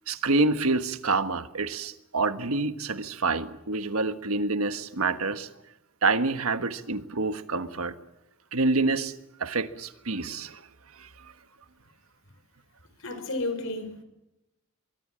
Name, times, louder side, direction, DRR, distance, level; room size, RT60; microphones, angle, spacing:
voice 1, 0.1-5.5 6.0-7.9 8.5-9.1 9.4-10.7 10.9-11.3, right 3 dB, 85° right, 1.4 m, -27 dB
voice 2, 13.0-14.0, left 2 dB, 70° left, 4.7 m, -32 dB
24.0 x 23.0 x 7.6 m
head